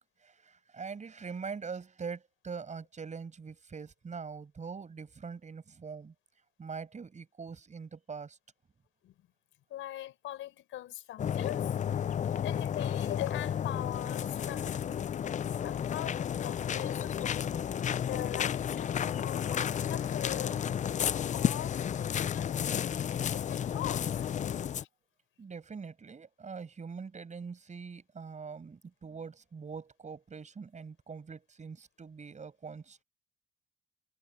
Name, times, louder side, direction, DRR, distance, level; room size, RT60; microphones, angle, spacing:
voice 1, 0.0-6.1 6.6-8.4 19.0-19.3 20.5-20.7 25.4-33.0, right 5 dB, 35° right, 6.8 m, -43 dB
voice 2, 9.7-12.1 12.4-15.1 15.6-17.5 18.1-20.6 21.0-24.3 24.8-24.9, left 13 dB, 85° left, 5.2 m, -42 dB
sound 1, 11.2-24.8, left 9 dB, 40° left, 0.4 m, -32 dB
cardioid pair, 90°, 20 cm